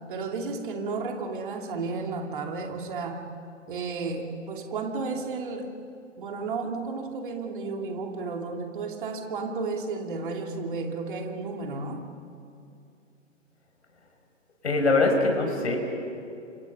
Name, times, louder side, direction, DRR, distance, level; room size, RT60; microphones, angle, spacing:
voice 1, 0.1-3.3 3.7-5.7 6.2-12.1, right 4 dB, 40° right, 3 dB, 2.7 m, -33 dB
voice 2, 14.6-15.8, left 3 dB, 60° left, 4 dB, 5.3 m, -22 dB
30.0 x 27.0 x 5.7 m, 2.6 s
figure-of-eight pair, 125°, 37 cm